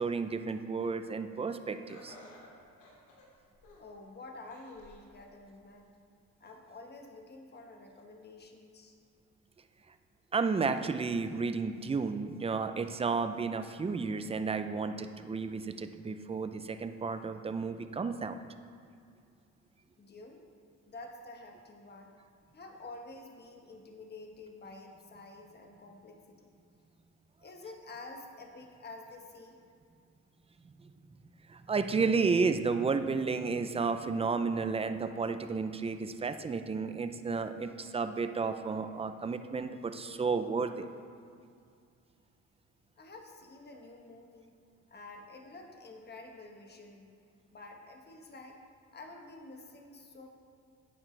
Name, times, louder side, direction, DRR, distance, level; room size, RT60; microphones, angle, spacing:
voice 1, 0.0-2.2 10.3-18.4 30.8-30.9 31.5-40.9, right 4 dB, 20° right, 9 dB, 0.5 m, -32 dB
Laughter, 1.9-4.0 4.5-5.1 5.6-5.7 6.7-6.8, left 1 dB, 85° left, 2.2 m, -55 dB
voice 2, 3.8-5.9 6.4-9.0 20.0-20.4 20.8-22.1 22.5-26.5 27.4-29.6 43.0-44.5 44.9-47.1 47.5-48.6 48.9-50.3, left 2 dB, 35° left, 2 dB, 1.4 m, -49 dB
10.5 x 8.7 x 3.3 m, 2.3 s
cardioid pair, 90°, 30 cm